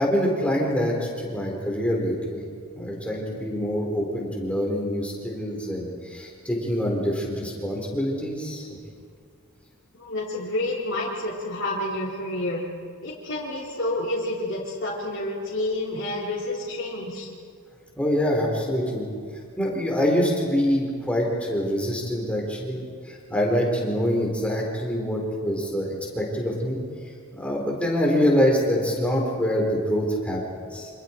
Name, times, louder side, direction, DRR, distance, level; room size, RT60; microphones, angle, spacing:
voice 1, 0.0-2.4 2.7-8.8 18.0-26.8 27.3-30.9, equal, 5° left, -2 dB, 4.2 m, -25 dB
voice 2, 10.0-12.6 13.0-17.3, left 1 dB, 55° left, -8 dB, 3.5 m, -29 dB
29.5 x 26.5 x 4.6 m, 2.1 s
head